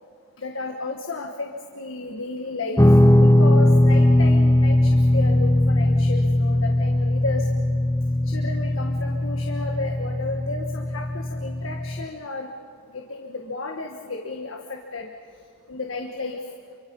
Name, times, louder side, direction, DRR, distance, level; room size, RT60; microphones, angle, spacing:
voice 1, 0.4-1.5 1.7-2.8 3.2-7.5 8.2-12.5 12.9-15.1 15.7-16.4, left 3 dB, 80° left, 3 dB, 1.6 m, -33 dB
Guitar, 2.8-12.1, left 1 dB, 15° left, 0.7 m, -19 dB
28.0 x 25.0 x 5.5 m, 2.3 s
head